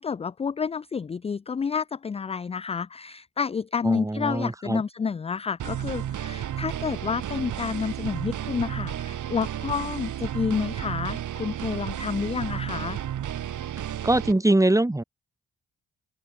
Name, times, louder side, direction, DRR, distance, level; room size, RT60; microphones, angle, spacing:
voice 1, 0.0-13.0, left 6 dB, 20° left, 0.4 m, -29 dB
voice 2, 3.8-4.8 14.0-15.0, right 1 dB, 10° right, 1.2 m, -22 dB
sound 1, 5.6-14.3, right 11 dB, 65° right, 1.3 m, -32 dB
open air
supercardioid pair, 55°, 32 cm